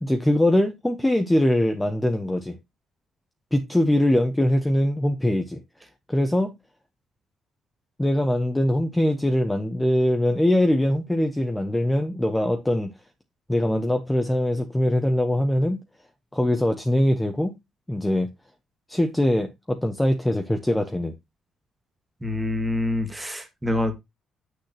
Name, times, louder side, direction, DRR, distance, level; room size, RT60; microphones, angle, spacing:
voice 1, 0.0-2.6 3.5-5.6 6.1-6.5 8.0-12.9 13.5-15.8 16.3-17.5 17.9-18.3 18.9-21.1, left 1 dB, 10° left, 0.9 m, -22 dB
voice 2, 22.2-23.9, left 1 dB, 10° right, 1.6 m, -26 dB
8.0 x 6.5 x 2.8 m
cardioid pair, 115°, 0 cm